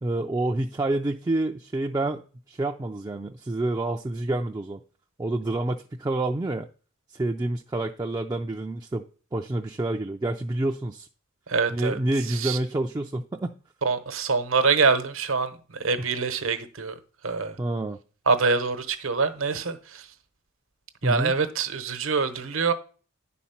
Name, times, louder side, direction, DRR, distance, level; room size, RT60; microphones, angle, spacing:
voice 1, 0.0-4.8 5.2-6.7 7.1-9.0 9.3-11.1 11.7-13.6 17.6-18.0 21.0-21.3, right 2 dB, 20° right, 0.3 m, -28 dB
voice 2, 11.5-12.0 12.3-12.6 13.8-16.9 17.2-17.6 18.3-20.1 21.0-22.7, right 4 dB, 75° right, 1.0 m, -25 dB
10.0 x 4.2 x 5.7 m
head